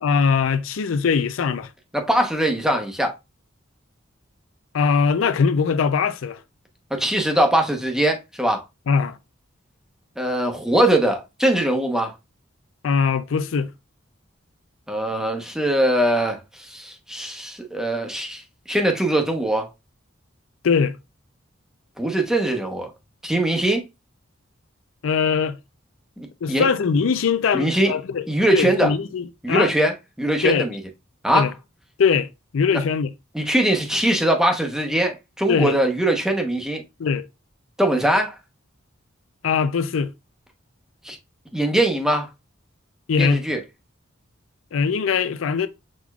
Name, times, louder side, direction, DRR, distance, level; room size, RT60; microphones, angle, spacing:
voice 1, 0.0-1.7 4.7-6.4 8.9-9.2 12.8-13.7 20.6-21.0 25.0-25.6 26.4-28.2 28.5-29.7 30.4-30.6 31.3-31.5 32.0-32.3 32.5-33.1 35.5-35.8 37.0-37.3 39.4-40.1 43.1-43.4 44.7-45.7, left 6 dB, 80° left, 0.4 m, -21 dB
voice 2, 1.9-3.1 6.9-8.6 10.2-12.1 14.9-18.4 18.7-19.7 22.0-22.9 23.2-23.8 26.2-26.7 27.5-27.9 28.3-28.9 29.4-29.9 30.2-30.8 31.2-31.5 33.3-36.8 37.8-38.4 41.0-41.2 41.5-42.3 43.2-43.6, right 1 dB, 5° right, 0.8 m, -21 dB
6.4 x 3.5 x 2.3 m
head